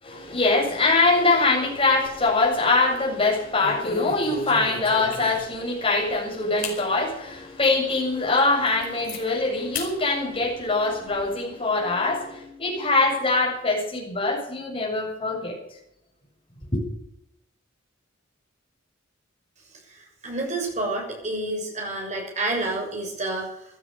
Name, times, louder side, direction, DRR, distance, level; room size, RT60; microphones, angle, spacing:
voice 1, 0.0-15.6 16.7-16.8, left 3 dB, 25° left, -2 dB, 7.7 m, -23 dB
sound 1, 1.7-2.5 2.8-3.0 3.6-5.7 6.1-6.2 6.6-6.8 7.3-7.4 8.0-8.1 8.4-9.2 9.7-9.9 10.3-11.2, left 3 dB, 45° left, 4.8 m, -35 dB
voice 2, 20.2-23.5, right 2 dB, 35° right, 1 dB, 6.6 m, -28 dB
15.5 x 13.0 x 7.0 m, 0.78 s
head